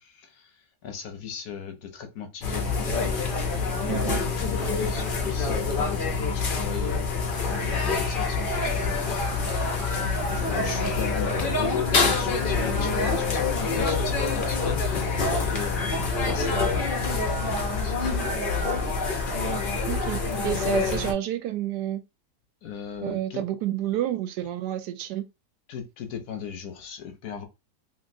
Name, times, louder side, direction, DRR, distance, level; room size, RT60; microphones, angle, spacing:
voice 1, 0.0-2.7 3.8-7.0 7.4-9.2 9.6-15.1 15.5-18.4 22.6-23.4 25.7-27.5, left 7 dB, 65° left, 1.0 m, -38 dB
sound 1, 2.4-21.1, left 4 dB, 50° left, 0.6 m, -26 dB
voice 2, 3.9-4.2 19.9-22.0 23.0-25.3, right 12 dB, 90° right, 1.2 m, -29 dB
3.1 x 2.7 x 2.6 m
omnidirectional pair, 1.7 m